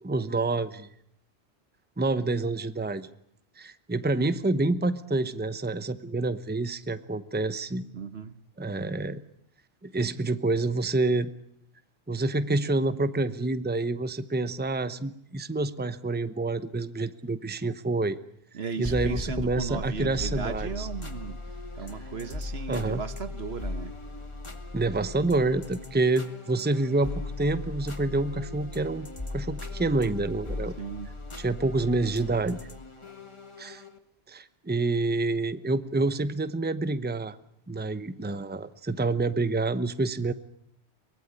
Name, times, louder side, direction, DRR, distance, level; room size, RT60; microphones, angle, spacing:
voice 1, 0.0-0.9 2.0-3.1 3.6-7.8 8.6-9.2 9.8-11.3 12.1-18.2 18.8-20.9 22.7-23.0 24.7-29.1 29.3-30.8 31.4-32.6 33.6-33.8 34.3-37.4 37.7-40.3, right 2 dB, 10° right, 12 dB, 0.9 m, -28 dB
voice 2, 7.9-8.4 18.5-21.4 21.8-23.9 30.8-31.1, right 5 dB, 70° right, 12 dB, 1.5 m, -36 dB
sound 1, 18.8-21.6, equal, 10° left, 1.5 m, -37 dB
sound 2, 20.2-34.0, left 3 dB, 25° left, 1.7 m, -38 dB
23.5 x 20.5 x 9.8 m, 0.73 s
omnidirectional pair, 1.1 m